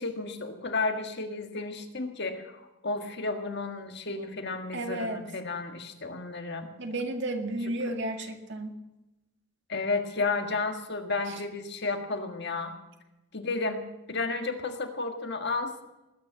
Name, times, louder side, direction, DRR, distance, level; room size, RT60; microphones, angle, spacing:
voice 1, 0.0-6.7 9.7-12.8 13.3-13.8 14.1-15.8, left 3 dB, 50° left, 6 dB, 1.7 m, -32 dB
voice 2, 4.7-5.2 6.8-8.7 11.3-11.4, right 1 dB, 55° right, 5 dB, 2.0 m, -33 dB
20.0 x 9.5 x 7.5 m, 1.0 s
head